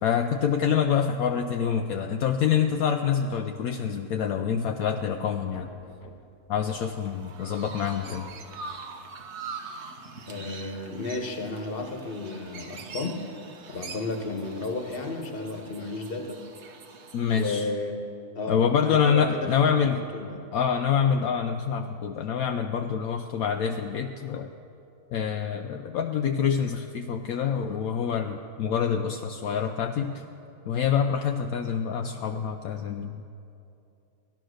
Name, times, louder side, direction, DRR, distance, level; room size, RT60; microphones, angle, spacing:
voice 1, 0.0-5.7 6.5-8.3 17.1-17.7 18.5-20.0 20.5-24.5 25.1-30.2 30.7-33.2, left 7 dB, 70° left, 5 dB, 1.0 m, -26 dB
sound 1, 5.3-8.7, left 4 dB, 85° left, 1.5 m, -50 dB
Chirp tweet, 7.0-17.6, right 4 dB, 50° right, 1.1 m, -43 dB
voice 2, 10.3-13.2 13.7-16.4 17.3-18.0 18.3-20.4, left 3 dB, 40° left, 4 dB, 1.4 m, -33 dB
16.5 x 12.0 x 6.4 m, 2.7 s
omnidirectional pair, 1.6 m